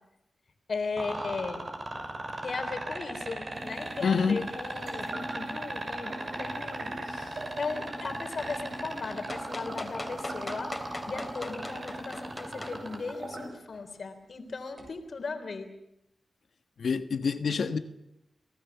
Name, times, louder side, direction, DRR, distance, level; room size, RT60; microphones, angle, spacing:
voice 1, 0.7-1.7 2.4-15.7, left 4 dB, 60° left, 3.6 m, -37 dB
sound 1, 1.0-13.1 14.8-14.9, right 2 dB, 40° right, 6.6 m, -36 dB
sound 2, 3.5-13.5, right 1 dB, 60° right, 6.6 m, -43 dB
voice 2, 4.0-4.4 16.8-17.8, left 5 dB, 80° left, 1.4 m, -27 dB
sound 3, 9.1-12.8 13.7-13.8, left 2 dB, 25° left, 3.3 m, -39 dB
28.5 x 18.0 x 7.2 m
wide cardioid pair, 75°, 0 cm